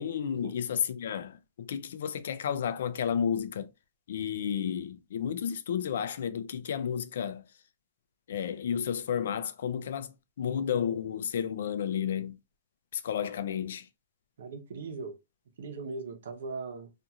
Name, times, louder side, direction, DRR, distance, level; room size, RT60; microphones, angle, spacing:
voice 1, 0.0-3.7 4.1-7.4 8.3-12.4 12.9-13.9, left 8 dB, 70° left, 0.4 m, -32 dB
voice 2, 14.4-15.2 15.6-16.9, right 4 dB, 75° right, 0.8 m, -39 dB
2.8 x 2.5 x 2.3 m
hypercardioid pair, 170°, 0 cm